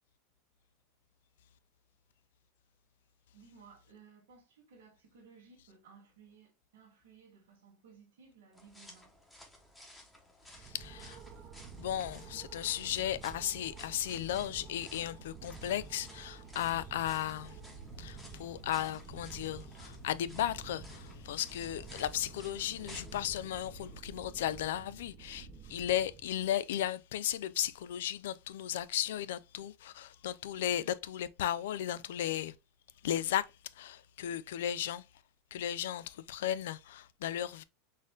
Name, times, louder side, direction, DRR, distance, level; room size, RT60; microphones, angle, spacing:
voice 1, 3.3-9.2, right 5 dB, 85° right, 1.5 m, -59 dB
sound 1, 8.5-23.2, left 1 dB, 5° left, 1.0 m, -56 dB
sound 2, 10.5-26.5, right 5 dB, 35° right, 0.6 m, -50 dB
voice 2, 10.6-11.2 11.8-17.6 18.0-32.6 33.0-35.0 35.5-37.6, left 11 dB, 85° left, 0.3 m, -35 dB
sound 3, 16.5-24.0, left 1 dB, 60° left, 1.9 m, -54 dB
4.2 x 2.5 x 3.5 m
supercardioid pair, 130°, 0 cm